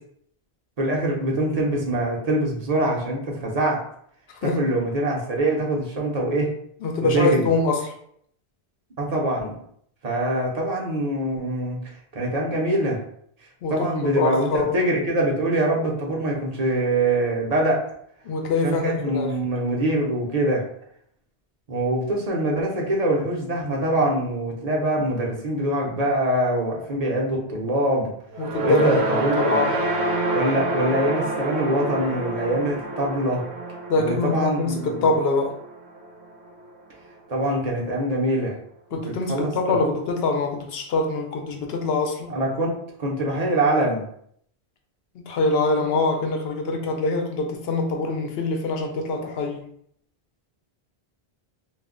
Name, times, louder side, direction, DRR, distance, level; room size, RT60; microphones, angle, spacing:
voice 1, 0.8-3.8 4.4-6.5 7.0-7.5 9.0-9.5 10.0-13.0 13.7-17.8 18.6-20.6 21.7-28.1 28.6-29.6 30.3-33.4 33.9-35.1 37.3-38.6 39.0-39.9 42.3-44.1, right 1 dB, 45° right, -2 dB, 0.6 m, -24 dB
voice 2, 6.8-7.9 13.6-14.8 18.2-19.3 28.4-29.7 33.9-35.6 38.9-42.3 45.3-49.6, left 3 dB, 70° left, 3 dB, 0.8 m, -24 dB
sound 1, 28.3-36.7, right 2 dB, 75° right, 0.8 m, -28 dB
2.3 x 2.1 x 3.6 m, 0.67 s
omnidirectional pair, 1.1 m